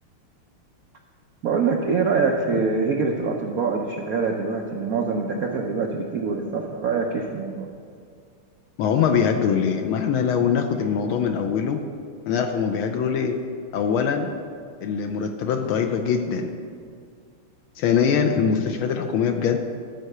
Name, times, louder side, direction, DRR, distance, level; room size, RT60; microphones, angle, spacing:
voice 1, 1.4-7.7, right 4 dB, 75° right, 1 dB, 0.8 m, -24 dB
voice 2, 8.8-11.8 12.3-13.4 13.7-14.3 14.8-16.5 17.8-19.6, left 7 dB, 75° left, 5 dB, 1.4 m, -22 dB
13.0 x 4.7 x 6.6 m, 2.2 s
omnidirectional pair, 2.3 m